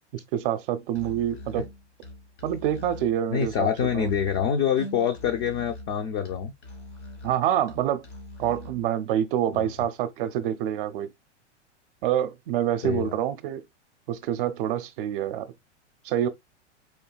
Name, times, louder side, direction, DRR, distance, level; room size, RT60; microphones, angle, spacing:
voice 1, 0.1-1.7 2.4-3.7 3.9-4.1 7.2-8.0 8.4-11.1 12.0-13.6 14.1-15.5 16.0-16.3, right 11 dB, 50° right, 0.5 m, -26 dB
Musical instrument, 0.9-8.9, left 1 dB, 80° left, 2.0 m, -43 dB
voice 2, 3.3-6.5 9.5-9.7 12.8-13.2, left 8 dB, 35° left, 0.5 m, -26 dB
4.5 x 2.7 x 2.3 m
hypercardioid pair, 105°, 36 cm